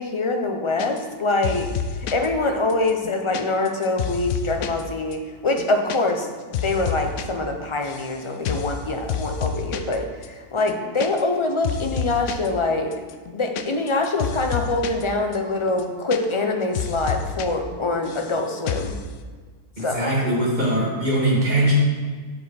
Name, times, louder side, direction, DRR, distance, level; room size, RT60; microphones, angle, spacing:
voice 1, 0.0-1.7 2.1-6.3 6.6-12.9 13.3-19.0 19.8-20.1, left 2 dB, 30° left, 4 dB, 0.5 m, -24 dB
sound 1, 0.8-1.2 1.4-2.3 2.7-4.8 5.1-5.2 5.5-6.0 6.2-7.2 7.5-8.1 8.4-8.8 9.1-10.0 10.2-10.3 10.6-11.4 11.6-12.5 12.9-15.0 15.3-15.4 15.7-16.5 16.7-17.5 17.7-18.3 18.7-19.0, left 8 dB, 70° left, 0.9 m, -29 dB
voice 2, 19.8-21.7, right 1 dB, 35° right, -6 dB, 2.5 m, -21 dB
7.3 x 6.5 x 4.2 m, 1.5 s
omnidirectional pair, 1.4 m